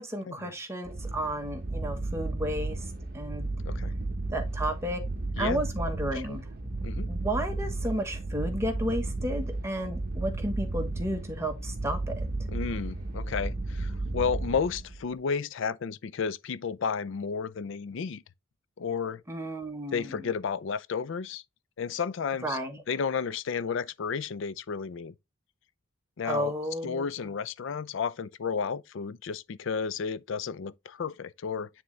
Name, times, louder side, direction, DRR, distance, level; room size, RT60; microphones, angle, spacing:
voice 1, 0.0-2.8 3.1-3.5 4.3-5.0 5.4-6.4 7.1-12.3 19.3-20.1 22.4-22.8 26.2-27.3, right 1 dB, 10° right, 1.0 m, -32 dB
sound 1, 0.8-15.1, right 2 dB, 45° right, 0.9 m, -33 dB
voice 2, 12.5-18.2 18.8-19.2 19.9-21.4 21.8-22.6 22.9-25.1 26.2-26.5 26.8-31.7, left 6 dB, 55° left, 0.4 m, -32 dB
9.5 x 3.6 x 3.1 m
head